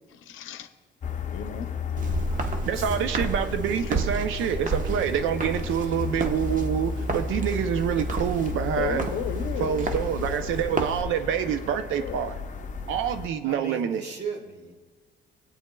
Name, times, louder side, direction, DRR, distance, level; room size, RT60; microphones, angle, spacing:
voice 1, 0.1-0.7 1.3-2.1 8.8-9.8 12.0-12.2, left 9 dB, 80° left, 10 dB, 0.6 m, -34 dB
sound 1, 1.0-13.3, left 5 dB, 40° left, 0.6 m, -34 dB
Walk footsteps, 2.0-11.0, right 3 dB, 40° right, 1.0 m, -32 dB
voice 2, 2.6-9.1 9.6-12.3 12.9-14.0, right 8 dB, 85° right, 8 dB, 0.6 m, -27 dB
voice 3, 13.4-14.7, right 4 dB, 60° right, 2 dB, 1.8 m, -36 dB
20.0 x 8.7 x 2.2 m, 1.4 s
cardioid pair, 90°, 20 cm